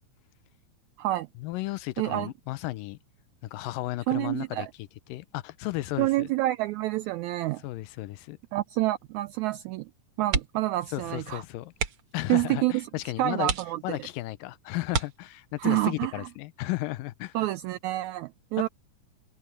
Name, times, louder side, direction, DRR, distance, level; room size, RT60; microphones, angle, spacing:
voice 1, 1.4-3.0 3.4-6.3 7.6-8.4 10.9-11.7 12.1-13.5 13.8-17.5, left 18 dB, 90° left, 2.4 m, -34 dB
voice 2, 2.0-2.3 4.1-4.7 6.0-7.6 8.5-9.9 10.2-11.4 12.3-12.7 13.2-13.8 15.6-16.1 17.3-18.7, right 17 dB, 85° right, 1.6 m, -27 dB
sound 1, 10.3-10.8 11.1-11.3 11.7-12.2 12.8-12.9 13.4-14.2 14.9-15.7 17.2-17.5 17.9-18.0, right 5 dB, 50° right, 2.0 m, -31 dB
omnidirectional pair, 3.8 m